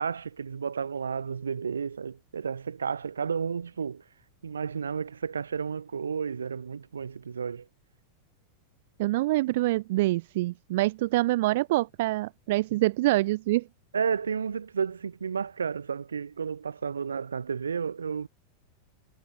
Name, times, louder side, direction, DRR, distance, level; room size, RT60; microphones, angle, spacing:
voice 1, 0.0-4.0 4.4-7.7 13.9-18.3, right 6 dB, 70° right, 4.7 m, -32 dB
voice 2, 9.0-13.7, right 18 dB, 50° right, 1.7 m, -25 dB
figure-of-eight pair, 90°, 0 cm